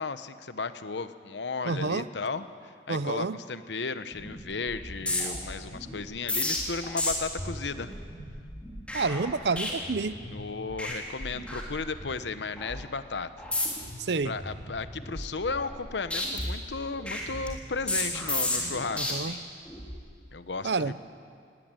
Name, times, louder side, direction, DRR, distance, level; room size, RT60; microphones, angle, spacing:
voice 1, 0.0-7.9 10.3-13.3 14.2-19.4 20.3-20.9, left 4 dB, 80° left, 12 dB, 1.0 m, -35 dB
voice 2, 1.6-2.0 2.9-3.4 8.9-10.1 14.0-14.3 19.0-19.3 20.6-20.9, right 4 dB, 70° right, 15 dB, 0.7 m, -28 dB
sound 1, 4.1-4.4 4.7-10.4 10.7-10.9 11.2-12.2 12.6-12.8 13.4-13.9 14.3-15.8 16.1-19.1 19.7-20.0, left 1 dB, 5° left, 3.6 m, -33 dB
19.5 x 19.0 x 9.0 m, 2.3 s
head